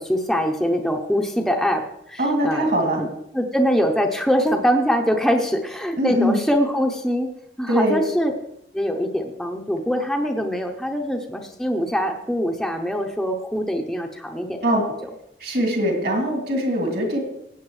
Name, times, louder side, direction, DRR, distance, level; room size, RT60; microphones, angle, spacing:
voice 1, 0.0-2.7 3.3-7.3 7.6-8.3 8.7-14.6 16.0-16.1, equal, ahead, 3 dB, 0.7 m, -23 dB
voice 2, 2.2-3.0 6.0-6.4 7.7-8.0 14.6-14.9 15.4-17.2, equal, 60° right, 0 dB, 2.5 m, -22 dB
17.5 x 8.2 x 3.2 m, 0.81 s
head